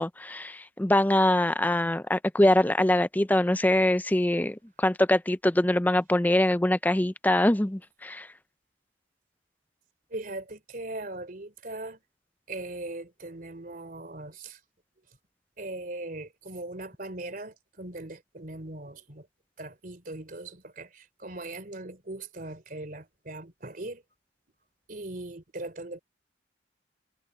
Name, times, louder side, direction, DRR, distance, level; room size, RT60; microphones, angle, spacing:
voice 1, 0.0-8.3, left 1 dB, 10° left, 0.5 m, -23 dB
voice 2, 10.1-12.0 12.5-14.6 15.6-19.3 19.6-24.0 24.9-26.0, right 2 dB, 50° right, 3.5 m, -39 dB
head